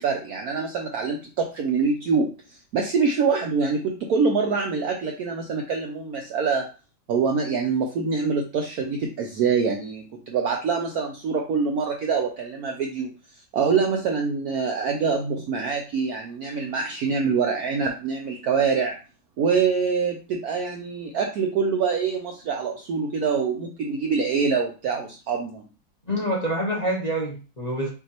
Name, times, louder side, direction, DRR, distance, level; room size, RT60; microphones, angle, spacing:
voice 1, 0.0-6.7 7.1-13.1 13.5-18.9 19.4-25.6, right 5 dB, 75° right, 2 dB, 0.8 m, -25 dB
voice 2, 26.1-27.9, equal, 30° left, -3 dB, 0.8 m, -26 dB
5.8 x 2.6 x 2.8 m, 0.35 s
omnidirectional pair, 2.1 m